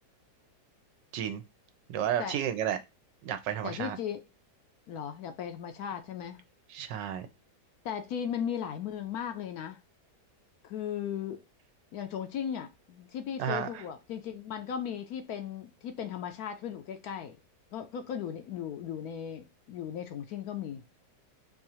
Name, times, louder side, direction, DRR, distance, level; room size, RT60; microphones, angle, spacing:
voice 1, 1.9-2.8 3.2-4.0 6.7-7.3 13.4-13.7, right 9 dB, 85° right, 1.3 m, -31 dB
voice 2, 3.6-4.2 4.9-6.4 7.8-9.8 10.6-11.4 11.9-17.4 17.7-20.8, left 8 dB, 70° left, 1.0 m, -37 dB
4.5 x 2.5 x 2.8 m
omnidirectional pair, 1.9 m